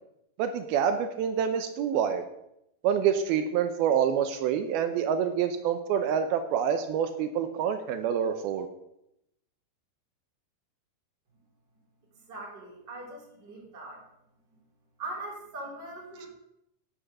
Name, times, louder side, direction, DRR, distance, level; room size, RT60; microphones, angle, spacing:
voice 1, 0.4-2.2 2.8-8.7, right 8 dB, 80° right, 8 dB, 2.3 m, -27 dB
voice 2, 12.3-14.0 15.0-16.3, right 2 dB, 25° right, -5 dB, 3.7 m, -41 dB
10.0 x 7.6 x 6.8 m, 0.80 s
omnidirectional pair, 5.1 m